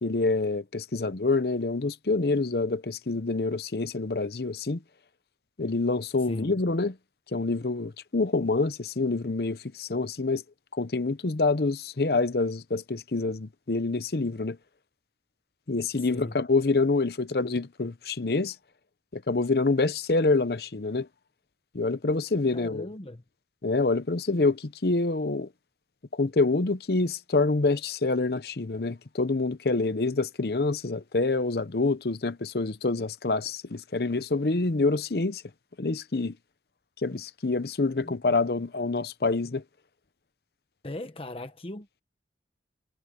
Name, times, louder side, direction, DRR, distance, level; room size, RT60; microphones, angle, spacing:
voice 1, 0.0-4.8 5.6-7.0 7.3-10.4 10.7-14.6 15.7-18.6 19.1-21.1 21.7-22.9 23.6-25.5 26.1-35.4 35.8-36.4 37.0-39.6, left 3 dB, 60° left, 0.8 m, -26 dB
voice 2, 22.5-23.2 40.8-42.0, left 1 dB, 30° left, 0.9 m, -38 dB
head